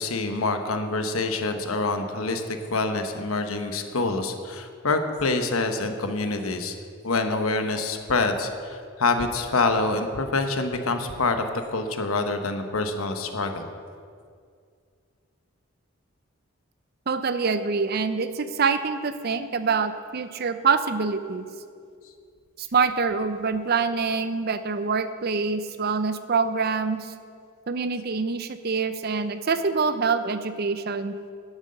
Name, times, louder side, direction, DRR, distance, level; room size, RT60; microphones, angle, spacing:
voice 1, 0.0-6.7 7.0-11.5 11.7-13.7, left 3 dB, 85° left, 6 dB, 1.0 m, -26 dB
voice 2, 17.1-21.5 22.6-27.1 27.7-31.1, right 5 dB, 45° right, 11 dB, 0.5 m, -25 dB
10.5 x 8.1 x 6.5 m, 2.2 s
head